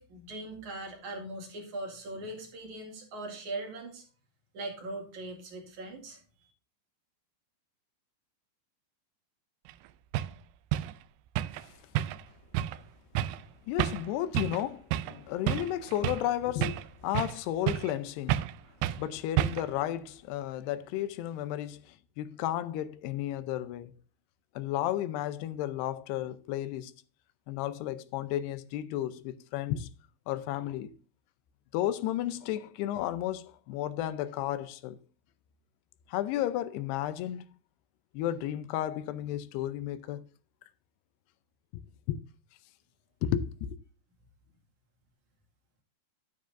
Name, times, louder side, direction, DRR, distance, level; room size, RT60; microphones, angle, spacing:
voice 1, 0.0-4.0 4.5-6.5, right 2 dB, 50° right, 3.3 m, -40 dB
sound 1, 9.7-9.8 10.1-10.3 10.7-10.9 11.4-11.6 12.0-12.3 12.5-12.8 13.2-13.4 13.8-14.1 14.4-14.6 14.9-15.2 15.5-16.3 16.6-17.4 17.7-18.0 18.3-18.6 18.8-19.0 19.4-19.8, right 13 dB, 90° right, 2.7 m, -30 dB
voice 2, 13.7-18.4 19.0-23.9 24.6-26.9 27.5-29.9 30.3-30.9 31.7-35.0 36.1-37.4 38.1-40.3 42.1-42.2 43.2-43.8, left 12 dB, 85° left, 2.8 m, -33 dB
11.5 x 9.6 x 2.5 m
omnidirectional pair, 4.7 m